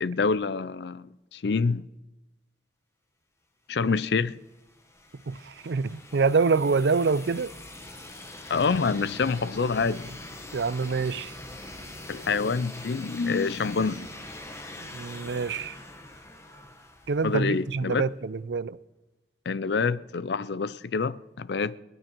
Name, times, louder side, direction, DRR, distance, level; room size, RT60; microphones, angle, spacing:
voice 1, 0.0-1.9 3.7-4.4 8.5-10.3 12.1-14.1 17.2-18.0 19.5-21.8, left 4 dB, 65° left, 0.5 m, -27 dB
sound 1, 4.0-17.8, left 1 dB, 15° left, 1.3 m, -44 dB
voice 2, 5.3-7.5 10.5-11.3 14.9-15.8 17.1-18.8, right 4 dB, 70° right, 0.5 m, -26 dB
29.5 x 10.0 x 4.5 m
head